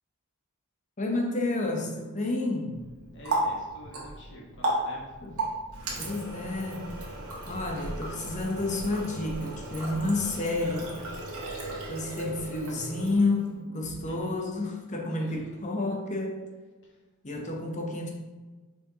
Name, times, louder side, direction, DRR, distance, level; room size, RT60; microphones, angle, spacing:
voice 1, 1.0-2.9 5.2-5.4 6.0-7.1 7.5-10.9 11.9-16.4 17.2-18.1, left 2 dB, 35° left, 2 dB, 0.9 m, -30 dB
Water tap faucet, 2.7-13.5, right 1 dB, 75° right, 1.5 m, -35 dB
voice 2, 3.1-5.0 13.8-14.3 15.1-15.6 16.8-16.9, equal, 55° left, -2 dB, 1.5 m, -47 dB
6.5 x 4.8 x 3.0 m, 1.3 s
head